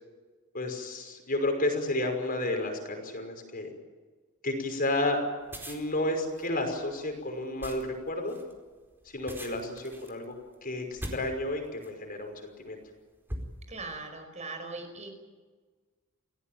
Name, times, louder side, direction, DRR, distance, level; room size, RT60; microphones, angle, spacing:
voice 1, 0.5-3.7 4.4-5.2 5.7-8.4 9.1-10.4 10.6-12.8, left 1 dB, 40° left, 4 dB, 5.7 m, -31 dB
sound 1, 5.4-12.1 12.7-12.9 13.3-14.0, equal, 10° right, 4.5 m, -43 dB
voice 2, 13.7-15.1, right 3 dB, 35° right, 5 dB, 5.2 m, -40 dB
28.0 x 18.0 x 9.0 m, 1.4 s
head